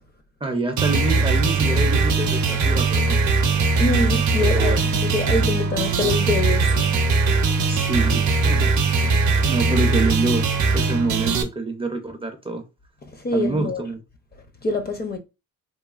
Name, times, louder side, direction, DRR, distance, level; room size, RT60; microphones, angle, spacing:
voice 1, 0.4-3.4 4.4-4.8 7.7-8.7 9.0-10.5 10.7-12.6 13.3-14.0, right 2 dB, 20° right, 0.4 m, -26 dB
sound 1, 0.8-11.4, right 4 dB, 65° right, 0.6 m, -20 dB
voice 2, 3.8-4.7 5.0-6.7 13.1-13.8 14.6-15.2, left 2 dB, 30° left, 0.5 m, -25 dB
3.1 x 2.1 x 2.3 m
cardioid pair, 110°, 31 cm